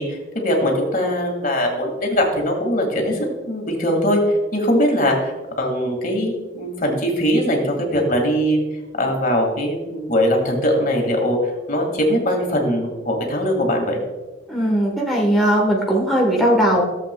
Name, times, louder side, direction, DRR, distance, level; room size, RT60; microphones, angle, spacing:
voice 1, 0.0-8.6 9.0-11.4 11.7-14.0, equal, 45° left, 1 dB, 1.9 m, -21 dB
voice 2, 14.5-16.8, equal, ahead, -3 dB, 1.1 m, -18 dB
15.5 x 7.6 x 2.2 m, 1.2 s
head